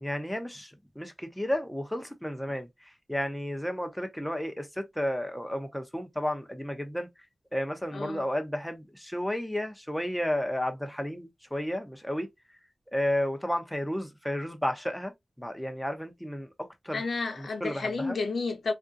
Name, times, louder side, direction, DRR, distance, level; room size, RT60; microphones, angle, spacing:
voice 1, 0.0-2.7 3.1-7.1 7.5-12.3 12.9-15.1 15.4-17.0 17.4-18.2, left 1 dB, 5° left, 0.6 m, -32 dB
voice 2, 7.9-8.2 16.9-18.7, left 3 dB, 80° left, 0.6 m, -31 dB
3.5 x 2.4 x 2.6 m
wide cardioid pair, 110°, 0 cm